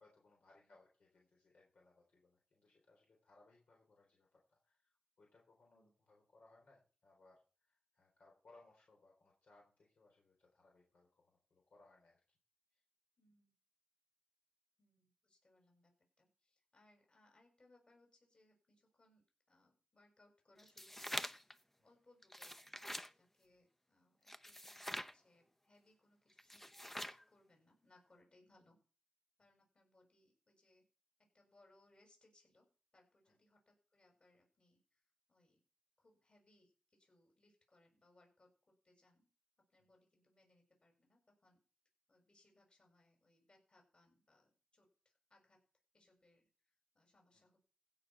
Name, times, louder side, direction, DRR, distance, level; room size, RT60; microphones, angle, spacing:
voice 1, 0.0-12.2 12.7-12.8 21.8-21.9 33.3-33.4 39.8-39.9 47.3-47.4, left 2 dB, 75° left, -1 dB, 4.0 m, -68 dB
voice 2, 13.2-13.5 14.8-28.8 29.4-30.9 31.2-35.6 36.0-39.3 39.7-41.6 42.1-45.6 45.9-47.7, left 2 dB, 45° left, 2 dB, 6.8 m, -72 dB
sound 1, 20.6-21.5 22.2-23.1 24.3-25.1 26.4-27.2, equal, 10° left, 0.7 m, -45 dB
16.0 x 6.2 x 5.8 m, 0.38 s
cardioid pair, 55°, 2 cm